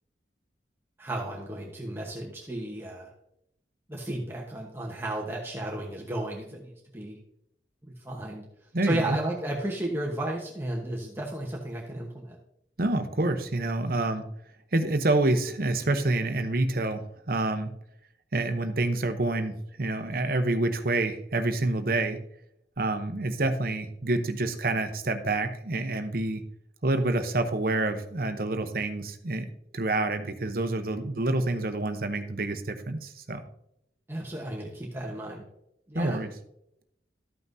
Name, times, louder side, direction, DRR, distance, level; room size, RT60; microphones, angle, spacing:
voice 1, 1.0-3.1 3.9-7.2 8.0-8.5 8.8-12.4 34.1-35.4 35.9-36.2, right 1 dB, 15° right, -3 dB, 1.0 m, -33 dB
voice 2, 8.7-9.2 12.8-14.3 14.7-17.7 18.3-22.2 22.8-26.4 26.8-29.5 29.7-33.4 35.9-36.3, right 2 dB, 50° right, 8 dB, 0.8 m, -27 dB
13.5 x 5.8 x 2.7 m, 0.78 s
head